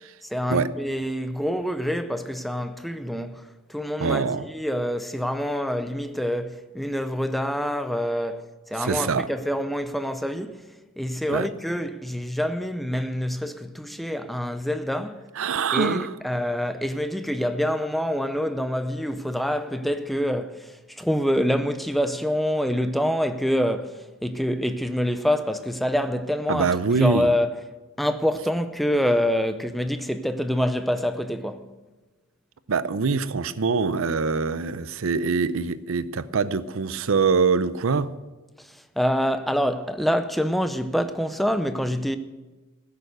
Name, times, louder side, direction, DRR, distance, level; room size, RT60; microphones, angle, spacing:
voice 1, 0.2-10.7 11.0-15.2 15.7-26.7 27.0-27.6 28.0-31.7 38.6-42.2, equal, ahead, 0.5 m, -26 dB
voice 2, 4.0-4.5 8.8-9.3 11.3-11.5 15.3-16.1 26.5-27.3 32.7-38.1, right 5 dB, 65° right, 0.6 m, -24 dB
15.5 x 6.8 x 7.9 m
head